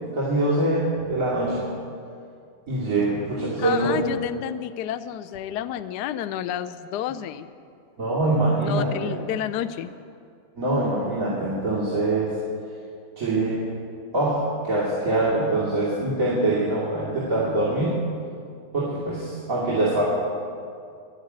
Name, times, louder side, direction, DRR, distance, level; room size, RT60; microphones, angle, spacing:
voice 1, 0.1-1.7 2.7-4.1 8.0-9.2 10.6-12.3 13.2-13.6 14.1-18.0 18.7-20.0, right 2 dB, 40° right, -9 dB, 3.1 m, -24 dB
voice 2, 3.6-7.5 8.6-9.9, left 11 dB, 80° left, 11 dB, 0.9 m, -30 dB
12.0 x 10.5 x 9.5 m, 2.3 s
omnidirectional pair, 2.3 m